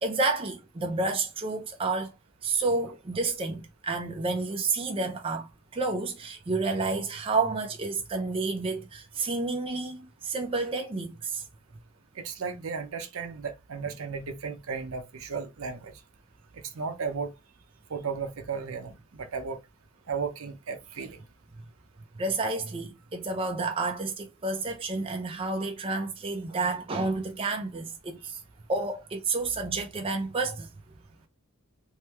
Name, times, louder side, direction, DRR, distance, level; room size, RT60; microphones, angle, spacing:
voice 1, 0.0-2.1 2.4-11.4 22.2-28.4 28.7-30.7, right 3 dB, 25° right, 0.4 m, -30 dB
voice 2, 12.1-15.9 16.5-17.3 17.9-19.6 20.1-21.2, right 5 dB, 70° right, 0.6 m, -35 dB
3.1 x 2.1 x 3.2 m
head